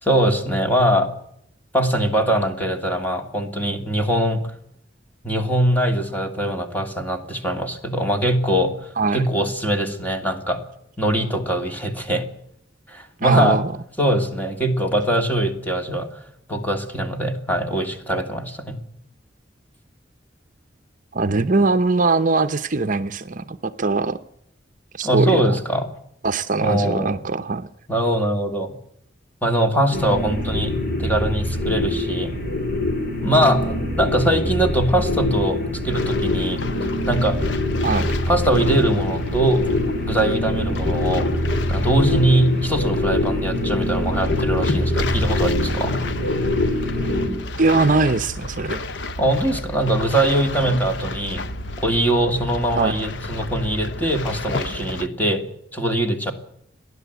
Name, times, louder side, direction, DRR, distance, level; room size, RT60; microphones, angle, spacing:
voice 1, 0.0-1.1 1.7-4.5 5.2-10.6 11.0-12.2 12.9-13.6 14.0-16.1 16.5-18.8 25.0-25.9 26.6-27.2 27.9-28.7 29.4-32.3 33.2-35.6 35.8-36.6 37.1-37.4 38.3-39.6 40.1-41.3 41.7-46.0 49.2-51.4 51.8-55.4 55.7-56.3, right 1 dB, 10° left, 4 dB, 2.8 m, -22 dB
voice 2, 13.2-13.6 21.1-24.2 24.9-25.6 26.2-27.7 37.8-38.1 47.6-48.8 52.8-53.0, right 3 dB, 45° right, 10 dB, 0.8 m, -21 dB
sound 1, 29.9-47.3, left 1 dB, 55° left, 4.8 m, -24 dB
sound 2, 35.9-55.1, left 2 dB, 75° left, 1.0 m, -32 dB
29.5 x 11.0 x 8.2 m, 0.72 s
head